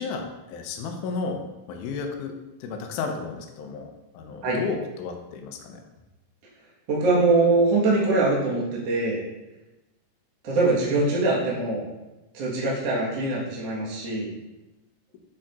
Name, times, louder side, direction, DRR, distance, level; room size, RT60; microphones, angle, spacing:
voice 1, 0.0-1.4 1.7-2.3 2.6-5.8, left 4 dB, 75° left, 3 dB, 2.1 m, -33 dB
voice 2, 6.9-9.2 10.4-11.8 12.3-14.3, right 3 dB, 55° right, -5 dB, 2.1 m, -23 dB
8.8 x 5.8 x 2.4 m, 1.0 s
omnidirectional pair, 4.0 m